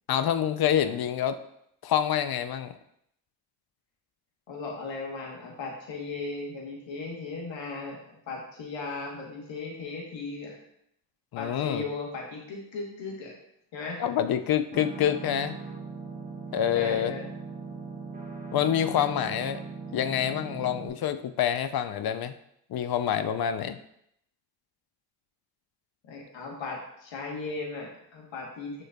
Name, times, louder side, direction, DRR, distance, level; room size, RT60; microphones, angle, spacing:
voice 1, 0.1-1.4 1.8-2.7 11.3-11.8 14.0-15.6 16.5-17.1 18.5-19.6 19.9-22.3 22.7-23.8, left 9 dB, 55° left, 11 dB, 0.5 m, -27 dB
voice 2, 4.5-10.6 11.4-13.3 13.7-14.0 16.7-17.3 26.1-28.8, left 3 dB, 85° left, -1 dB, 1.1 m, -37 dB
sound 1, 14.7-20.9, right 4 dB, 20° right, 1.0 m, -39 dB
6.4 x 3.1 x 2.2 m, 0.75 s
cardioid pair, 45°, 44 cm